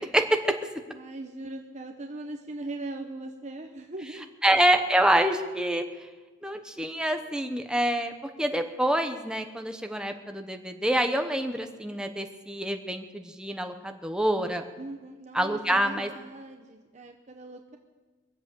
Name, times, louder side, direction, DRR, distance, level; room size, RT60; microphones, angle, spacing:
voice 1, 0.1-0.5 4.4-5.9 6.4-14.6 15.3-16.1, right 1 dB, 5° right, 5 dB, 0.9 m, -26 dB
voice 2, 0.9-4.3 14.8-17.8, right 2 dB, 35° right, 2 dB, 0.9 m, -40 dB
23.0 x 7.8 x 6.8 m, 1.3 s
head